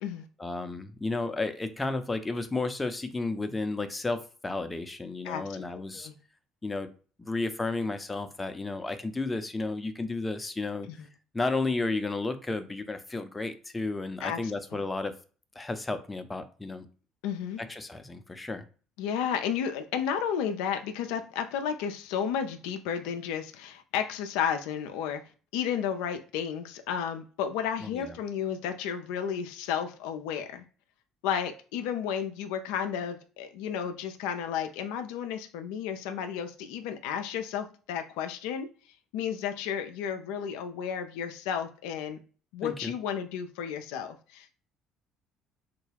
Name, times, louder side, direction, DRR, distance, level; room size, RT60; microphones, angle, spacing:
voice 1, 0.4-6.1 6.6-6.9 7.2-10.9 11.3-15.1 15.6-16.9 17.6-18.7 27.8-28.2 42.6-42.9, left 3 dB, 15° left, 0.6 m, -32 dB
voice 2, 5.2-6.1 10.9-11.0 14.2-14.8 17.2-17.6 19.0-25.2 25.5-30.6 31.2-38.7 39.1-42.2 42.5-44.5, left 8 dB, 70° left, 0.4 m, -32 dB
3.6 x 2.2 x 3.4 m
hypercardioid pair, 60°, 0 cm